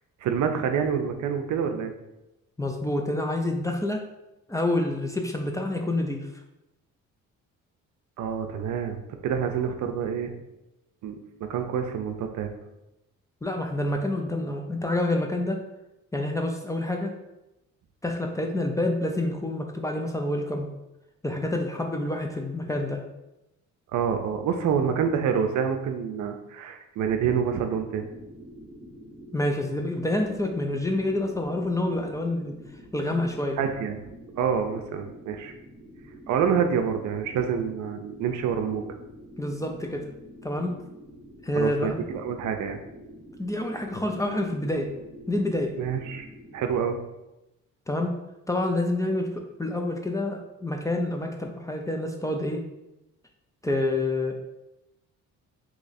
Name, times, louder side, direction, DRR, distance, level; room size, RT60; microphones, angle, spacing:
voice 1, 0.2-1.9 8.2-10.3 11.0-12.5 23.9-28.1 33.6-34.0 34.4-35.5 36.3-38.8 41.5-42.8 45.8-46.3 46.5-47.0, right 7 dB, 70° right, 6 dB, 0.5 m, -27 dB
voice 2, 2.6-4.0 4.5-6.3 13.4-15.6 16.1-17.1 18.0-20.7 21.2-23.0 29.3-32.6 32.9-33.6 39.4-40.1 40.4-40.8 41.4-42.1 43.4-44.9 45.3-45.7 47.9-48.2 48.5-52.6 53.6-54.4, left 1 dB, 10° left, 2 dB, 0.4 m, -27 dB
sound 1, 27.1-46.9, equal, 5° right, 0.8 m, -47 dB
3.0 x 2.4 x 4.0 m, 0.93 s
cardioid pair, 90°, 30 cm